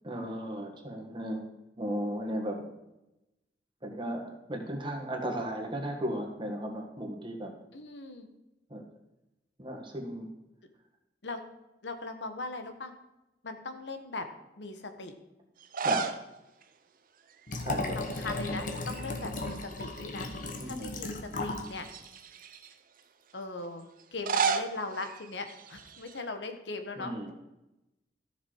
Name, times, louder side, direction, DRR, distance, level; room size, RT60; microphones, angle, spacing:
voice 1, 0.0-1.5 1.8-2.6 3.8-7.5 8.7-8.8 9.6-10.3 15.8-16.0 17.6-18.2 20.6-20.9 27.0-27.3, right 1 dB, 30° right, 1 dB, 1.8 m, -35 dB
voice 2, 7.7-8.3 11.2-11.4 11.8-12.9 13.4-14.2 14.6-15.1 17.9-20.3 20.6-21.9 23.3-27.1, left 3 dB, 90° left, 7 dB, 1.2 m, -39 dB
sound 1, 15.6-16.3 16.6-16.7 18.1-18.5 18.8-20.0 20.6-20.7 21.6-22.7 24.0-26.2, right 5 dB, 50° right, 0.7 m, -33 dB
Liquid, 17.5-21.7 22.0-22.1, left 2 dB, 50° left, 1.2 m, -35 dB
13.5 x 6.6 x 4.7 m, 0.95 s
head